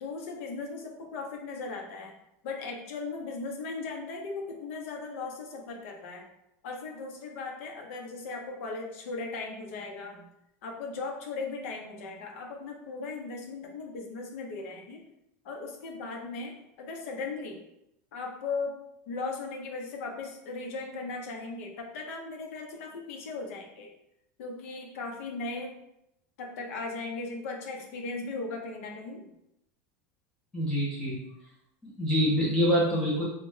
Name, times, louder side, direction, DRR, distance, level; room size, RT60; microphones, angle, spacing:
voice 1, 0.0-2.1 2.4-6.2 6.6-10.3 10.6-15.0 15.4-17.6 18.1-18.7 19.1-23.9 24.4-25.7 26.4-29.3, left 3 dB, 70° left, 1 dB, 0.7 m, -37 dB
voice 2, 30.5-31.2 32.0-33.2, equal, 10° left, -6 dB, 0.4 m, -25 dB
3.2 x 2.1 x 3.1 m, 0.82 s
supercardioid pair, 170°, 8 cm